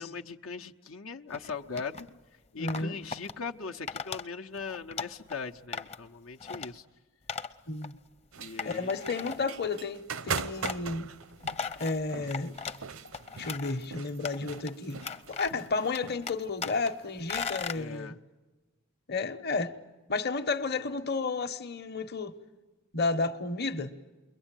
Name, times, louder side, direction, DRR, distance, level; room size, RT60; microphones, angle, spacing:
voice 1, 0.0-2.1 2.5-6.8 8.4-8.9 17.7-18.2, left 5 dB, 85° left, 1.1 m, -39 dB
sound 1, 1.3-2.1 2.7-3.3 3.9-4.2 4.6-5.4 5.7-6.1 6.4-6.7 7.3-7.5 7.8-7.9 8.6-9.6 10.4-10.8 11.2-12.8 13.1-13.8 14.2-14.7 15.0-15.7 15.9-16.9 17.3-17.8, left 5 dB, 30° left, 0.8 m, -37 dB
voice 2, 2.5-3.0 7.7-8.0 8.6-11.1 11.8-12.6 13.3-15.0 15.3-18.2 19.1-19.8 20.1-22.3 22.9-23.9, left 3 dB, 50° left, 1.1 m, -32 dB
sound 2, 8.3-17.7, right 6 dB, 90° right, 0.8 m, -41 dB
29.0 x 22.5 x 9.1 m
head